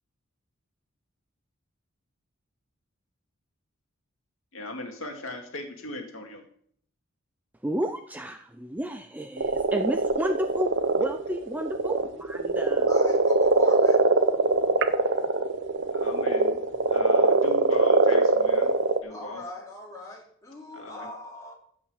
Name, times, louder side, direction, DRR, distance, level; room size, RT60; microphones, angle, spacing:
voice 1, 4.5-6.4 15.9-16.6 16.9-18.7 19.0-19.4 20.7-21.1, left 2 dB, 70° left, 2 dB, 2.3 m, -38 dB
voice 2, 7.6-12.9, equal, 10° right, 6 dB, 0.5 m, -32 dB
sound 1, 9.4-19.0, right 3 dB, 60° right, 0.9 m, -22 dB
voice 3, 12.8-14.0 19.1-21.5, left 2 dB, 15° left, -4 dB, 4.6 m, -41 dB
16.0 x 6.0 x 6.5 m, 0.64 s
head